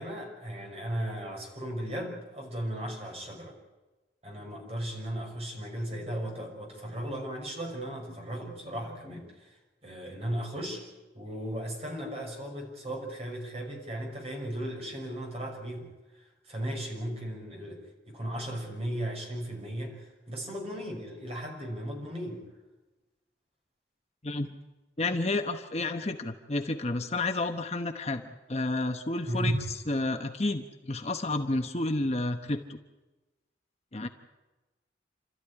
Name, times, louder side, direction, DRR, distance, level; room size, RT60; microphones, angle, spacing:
voice 1, 0.0-3.6 4.2-9.6 9.8-10.9 11.1-15.9 16.2-22.4 29.3-29.5, right 1 dB, 35° right, 1 dB, 6.0 m, -36 dB
voice 2, 25.0-28.2 28.5-32.8 33.9-34.1, left 2 dB, 35° left, 6 dB, 1.0 m, -30 dB
29.0 x 13.5 x 9.9 m, 1.1 s
head